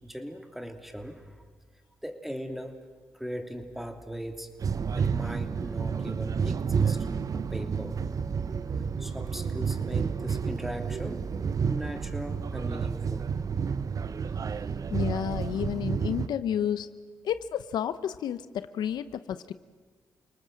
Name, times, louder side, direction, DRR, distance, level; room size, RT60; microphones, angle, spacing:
voice 1, 0.0-1.4 2.0-2.8 3.1-4.5 4.9-7.1 7.3-8.0 9.0-11.3 11.6-13.3, equal, 5° right, 5 dB, 3.0 m, -39 dB
sound 1, 4.6-16.3, right 6 dB, 55° right, 0.8 m, -30 dB
voice 2, 14.9-16.9 17.2-19.5, left 9 dB, 80° left, 13 dB, 0.7 m, -31 dB
29.0 x 19.5 x 7.7 m, 1.4 s
cardioid pair, 60°, 7 cm